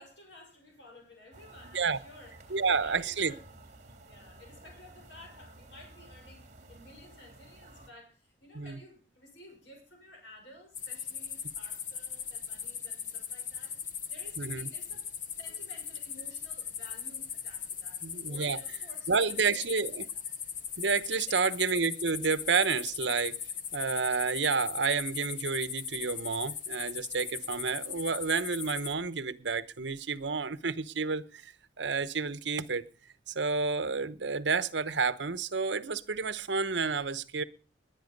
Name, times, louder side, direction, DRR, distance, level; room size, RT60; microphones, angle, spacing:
voice 1, 0.0-15.1 15.4-20.2 21.1-21.5, left 1 dB, 80° left, 6.1 m, -54 dB
sound 1, 1.3-7.9, right 2 dB, 40° right, 3.2 m, -53 dB
voice 2, 2.5-3.3 8.5-8.8 14.4-14.7 18.0-18.6 19.1-20.0 20.8-23.4 23.7-31.5 31.8-32.8 33.3-37.4, right 5 dB, 75° right, 1.0 m, -30 dB
sound 2, 10.7-28.9, left 7 dB, 45° left, 1.1 m, -39 dB
20.5 x 9.4 x 5.3 m
head